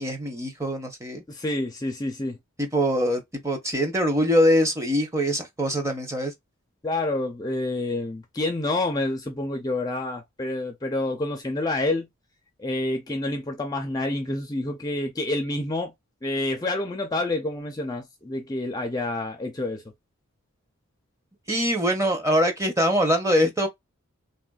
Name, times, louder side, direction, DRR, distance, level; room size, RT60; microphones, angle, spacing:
voice 1, 0.0-1.2 2.6-6.3 21.5-23.7, equal, 15° right, 0.7 m, -23 dB
voice 2, 1.3-2.4 6.8-12.1 12.6-15.9 16.2-19.8, left 2 dB, 15° left, 0.4 m, -28 dB
3.4 x 2.5 x 2.2 m
head